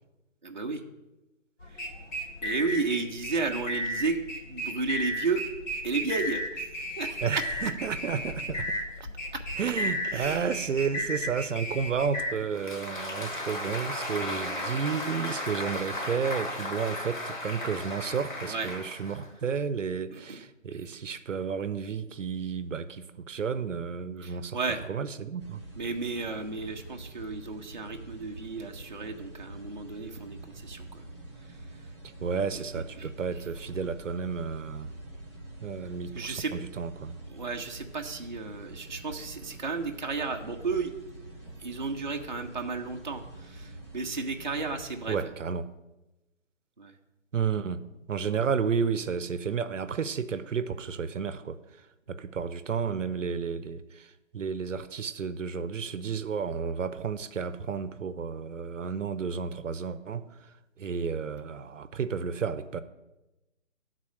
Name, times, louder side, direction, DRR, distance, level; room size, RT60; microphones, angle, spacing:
voice 1, 0.4-0.8 1.7-1.9 2.4-4.2 4.5-5.4 5.8-7.2 9.3-9.4 10.1-10.5 18.5-18.7 20.1-20.4 20.7-20.8 24.2-24.8 25.8-31.0 32.5-32.6 33.0-33.4 36.1-36.5 37.3-40.9 41.6-45.2 46.8-46.9, right 4 dB, 40° right, 2 dB, 0.6 m, -33 dB
sound 1, 1.6-12.3, left 1 dB, 80° left, 2.3 m, -34 dB
voice 2, 7.2-8.8 9.6-24.6 24.9-25.6 32.2-34.9 35.6-37.2 45.1-45.7 47.3-47.8 48.1-51.6 52.1-60.3 60.8-62.8, right 6 dB, 75° right, 13 dB, 0.7 m, -32 dB
Applause, 12.4-19.5, left 1 dB, 40° left, 1.2 m, -35 dB
sound 2, 25.4-45.3, right 2 dB, 20° left, 0.7 m, -46 dB
11.5 x 4.1 x 6.2 m, 1.0 s
hypercardioid pair, 175°, 37 cm